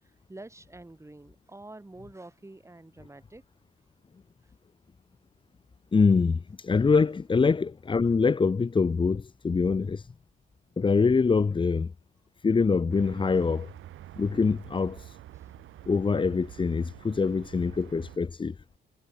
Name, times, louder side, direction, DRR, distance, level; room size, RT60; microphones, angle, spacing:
voice 1, 0.3-3.4 15.3-15.5, right 2 dB, 15° right, 7.1 m, -47 dB
voice 2, 5.9-10.1 10.8-11.9 12.4-13.7 14.2-15.2 15.9-18.5, left 4 dB, 25° left, 0.8 m, -24 dB
sound 1, 12.9-18.2, right 14 dB, 85° right, 6.3 m, -47 dB
cardioid pair, 90°, 20 cm